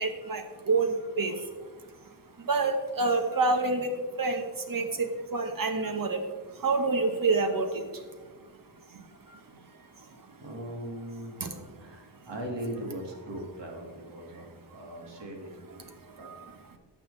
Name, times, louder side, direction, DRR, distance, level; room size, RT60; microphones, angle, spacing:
voice 1, 0.0-10.4 11.4-11.5 11.8-11.9 16.0-16.4, right 3 dB, 50° right, 5 dB, 1.3 m, -30 dB
voice 2, 9.3-11.4 11.8-16.3, right 1 dB, 70° right, 0 dB, 2.1 m, -40 dB
18.0 x 6.6 x 3.3 m, 1.4 s
wide cardioid pair, 160°, 44 cm